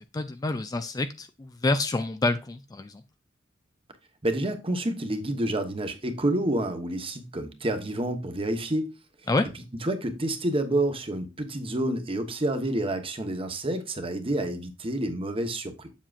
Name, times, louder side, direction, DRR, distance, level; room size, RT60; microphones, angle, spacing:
voice 1, 0.0-3.0 9.3-9.5, left 2 dB, 20° left, 0.4 m, -28 dB
voice 2, 4.2-8.9 9.8-15.9, right 1 dB, 30° right, 1.0 m, -28 dB
7.3 x 7.3 x 2.4 m
head